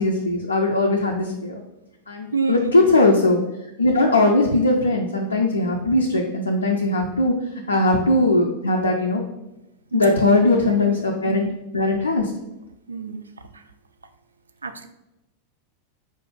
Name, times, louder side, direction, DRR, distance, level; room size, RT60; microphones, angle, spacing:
voice 1, 0.0-1.6 2.1-3.4 3.8-7.3 7.7-9.2 9.9-11.4 11.7-12.3, left 2 dB, 75° left, 1 dB, 0.4 m, -19 dB
voice 2, 2.3-2.8 9.9-10.8 11.2-11.5 12.9-13.3 13.5-13.6 14.6-14.9, right 4 dB, 75° right, 8 dB, 0.3 m, -28 dB
4.2 x 2.5 x 3.8 m, 0.94 s
figure-of-eight pair, 90°, 0 cm